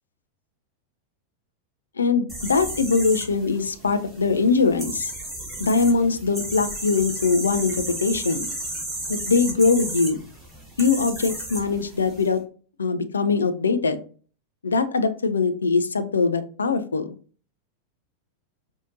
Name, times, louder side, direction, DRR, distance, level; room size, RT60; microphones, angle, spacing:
voice 1, 2.0-5.1 5.6-8.5 9.1-10.2 10.8-12.4 12.8-14.0 14.6-17.1, left 4 dB, 75° left, 11 dB, 0.4 m, -22 dB
sound 1, 2.3-12.3, right 1 dB, 5° right, 1.7 m, -34 dB
4.8 x 2.6 x 2.6 m, 0.40 s
figure-of-eight pair, 90°, 0 cm